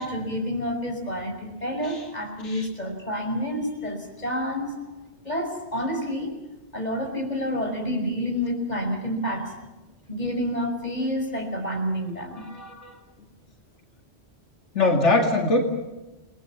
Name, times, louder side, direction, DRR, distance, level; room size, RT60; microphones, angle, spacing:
voice 1, 0.0-4.8 5.2-6.3 6.7-9.5 10.1-12.5, equal, 35° left, 3 dB, 5.7 m, -29 dB
voice 2, 12.3-13.0 14.7-15.6, left 2 dB, 85° left, 2 dB, 2.7 m, -23 dB
29.5 x 20.0 x 7.2 m, 1.1 s
omnidirectional pair, 1.2 m